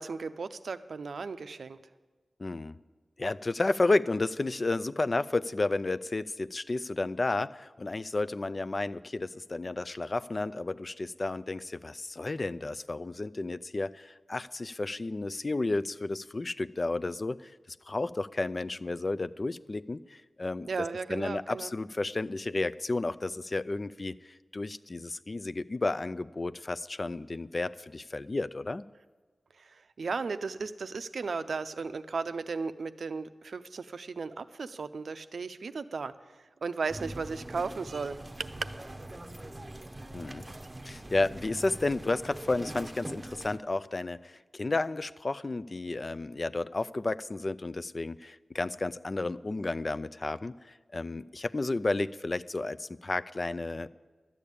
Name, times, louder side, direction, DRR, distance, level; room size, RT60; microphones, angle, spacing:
voice 1, 0.0-1.8 20.7-21.7 29.6-38.5, right 4 dB, 75° right, 11 dB, 0.5 m, -36 dB
voice 2, 2.4-2.8 3.2-17.5 17.9-20.7 21.1-28.8 40.1-40.5 40.8-53.9, left 2 dB, 40° left, 14 dB, 0.3 m, -32 dB
sound 1, 36.9-43.6, right 1 dB, 25° right, 0.7 m, -43 dB
12.0 x 8.4 x 8.6 m, 1.3 s
wide cardioid pair, 90°, 0 cm